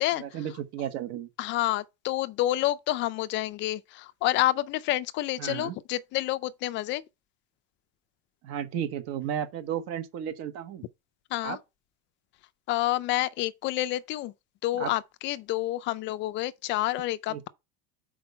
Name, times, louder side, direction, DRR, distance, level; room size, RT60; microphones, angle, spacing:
voice 1, 0.2-1.3 5.4-5.8 8.4-10.8 11.4-11.6 14.8-14.9 17.3-17.5, right 9 dB, 45° right, 1.0 m, -33 dB
voice 2, 1.4-7.0 11.3-11.6 12.7-14.3 14.6-17.5, left 15 dB, 35° left, 0.4 m, -28 dB
6.1 x 4.7 x 5.5 m
cardioid pair, 170°, 34 cm